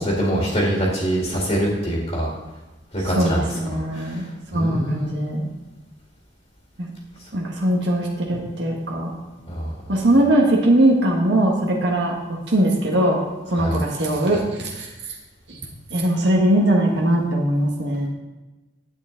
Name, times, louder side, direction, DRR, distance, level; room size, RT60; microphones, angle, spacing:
voice 1, 0.0-2.3 2.9-4.2 4.5-5.3 9.5-9.7 13.5-13.8, equal, 35° left, -3 dB, 1.9 m, -24 dB
voice 2, 3.1-4.2 4.5-5.5 6.8-6.9 7.3-9.2 9.9-12.1 12.5-13.2 13.5-14.9 15.9-18.1, right 1 dB, 75° right, -1 dB, 1.4 m, -20 dB
9.8 x 8.3 x 3.8 m, 1.1 s
head